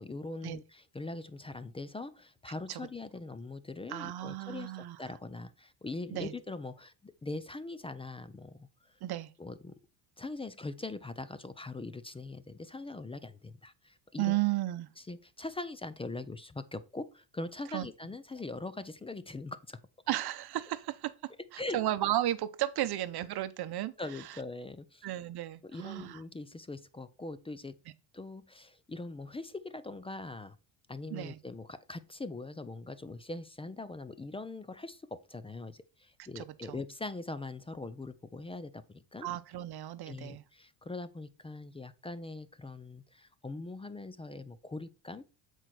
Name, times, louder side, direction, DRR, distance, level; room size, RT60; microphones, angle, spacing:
voice 1, 0.0-4.7 5.0-9.0 9.4-9.8 10.2-14.4 15.0-19.8 21.6-21.8 24.0-25.1 25.6-27.8 28.1-30.6 30.9-39.3 40.1-45.2, left 2 dB, 15° left, 0.4 m, -42 dB
voice 2, 3.9-5.0 6.1-6.3 9.0-9.3 14.2-14.9 17.7-17.9 20.1-21.1 21.5-23.9 24.2-24.3 25.0-26.2 31.1-31.4 36.3-36.8 39.2-40.4, right 14 dB, 50° right, 0.9 m, -34 dB
8.0 x 4.6 x 4.2 m
cardioid pair, 105°, 48 cm